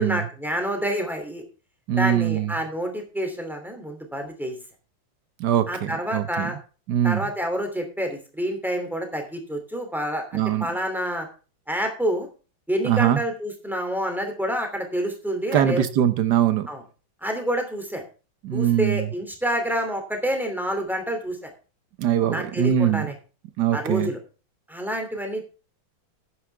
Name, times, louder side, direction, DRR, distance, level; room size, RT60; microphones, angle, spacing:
voice 1, 0.0-1.4 2.0-4.6 5.7-6.6 7.0-11.3 11.7-12.3 12.7-15.9 16.7-16.8 17.2-18.0 18.5-21.5 22.3-23.1 23.7-24.2 24.7-25.4, equal, ahead, 4 dB, 2.7 m, -28 dB
voice 2, 1.9-2.5 5.4-6.6 6.9-7.3 10.3-10.7 12.8-13.2 15.5-16.7 18.4-19.1 22.0-23.1 23.6-24.1, right 10 dB, 65° right, 13 dB, 1.4 m, -22 dB
12.0 x 9.6 x 3.4 m, 0.35 s
omnidirectional pair, 2.1 m